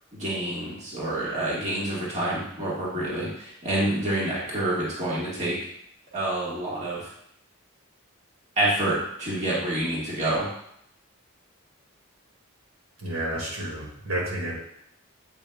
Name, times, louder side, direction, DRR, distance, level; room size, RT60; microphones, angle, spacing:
voice 1, 0.1-5.6 6.1-7.1 8.6-10.5, right 1 dB, 35° right, -7 dB, 1.7 m, -27 dB
voice 2, 13.0-14.5, right 1 dB, 80° right, -4 dB, 2.0 m, -30 dB
8.1 x 5.3 x 2.3 m, 0.73 s
head